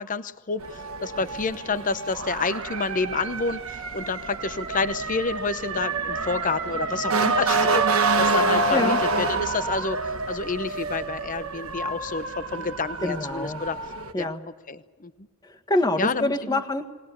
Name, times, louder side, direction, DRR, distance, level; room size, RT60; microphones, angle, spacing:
voice 1, 0.0-10.0 10.3-13.8 14.1-14.3 14.7-15.1 16.0-16.6, left 4 dB, 40° left, 12 dB, 0.8 m, -29 dB
Motor vehicle (road) / Siren, 0.6-14.1, right 3 dB, 70° right, 1.3 m, -27 dB
voice 2, 13.0-13.6 14.1-14.4 15.4-16.9, left 2 dB, 20° left, 6 dB, 1.7 m, -26 dB
21.0 x 19.5 x 8.8 m, 1.4 s
head